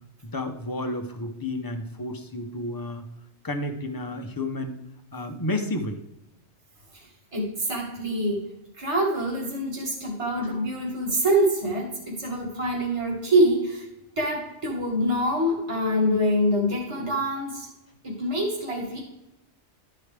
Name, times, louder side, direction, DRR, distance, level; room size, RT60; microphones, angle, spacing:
voice 1, 0.2-3.0 3.4-4.8 5.1-6.0 10.4-10.5, left 1 dB, 20° left, 4 dB, 0.7 m, -31 dB
voice 2, 7.3-8.5 8.8-13.8 14.2-17.7 18.0-19.0, equal, 25° right, -3 dB, 2.0 m, -25 dB
12.0 x 4.8 x 3.3 m, 0.88 s
omnidirectional pair, 1.2 m